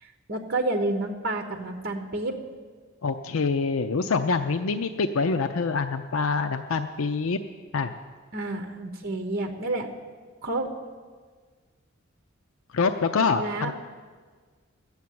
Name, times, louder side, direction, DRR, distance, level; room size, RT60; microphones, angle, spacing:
voice 1, 0.0-2.3 8.3-9.9 10.4-10.7 13.4-13.7, right 2 dB, 50° right, 4 dB, 1.1 m, -29 dB
voice 2, 3.0-7.4 7.7-7.9 12.7-13.7, left 4 dB, 90° left, 8 dB, 0.5 m, -25 dB
14.5 x 7.2 x 9.4 m, 1.5 s
head